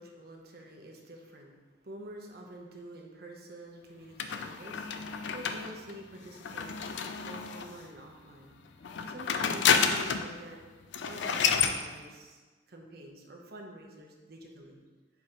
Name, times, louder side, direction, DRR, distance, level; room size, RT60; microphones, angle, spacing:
voice 1, 0.0-1.5 1.8-8.5 9.1-10.6 11.0-12.4 12.7-14.8, right 1 dB, 60° right, 1 dB, 0.9 m, -47 dB
sound 1, 4.2-7.8 8.8-10.3 10.6-10.7 10.9-11.8, left 6 dB, 85° left, 0.4 m, -30 dB
4.6 x 4.5 x 5.0 m, 1.3 s
head